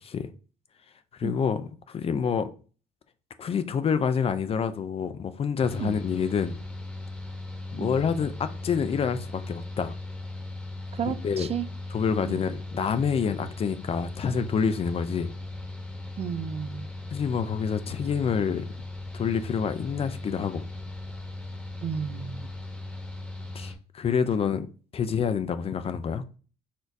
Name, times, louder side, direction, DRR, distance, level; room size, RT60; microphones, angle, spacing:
voice 1, 1.2-2.5 3.4-6.6 7.7-10.0 11.0-11.5 11.9-15.3 17.1-18.7 19.1-20.7 23.5-24.7 24.9-26.2, left 6 dB, 35° left, 0.4 m, -27 dB
Mechanical fan, 5.6-23.7, left 2 dB, 10° left, 1.3 m, -38 dB
voice 2, 10.9-11.7 12.3-12.4 16.2-16.9 21.8-22.5, right 7 dB, 35° right, 0.4 m, -32 dB
4.3 x 2.6 x 4.6 m
cardioid pair, 110°, 17 cm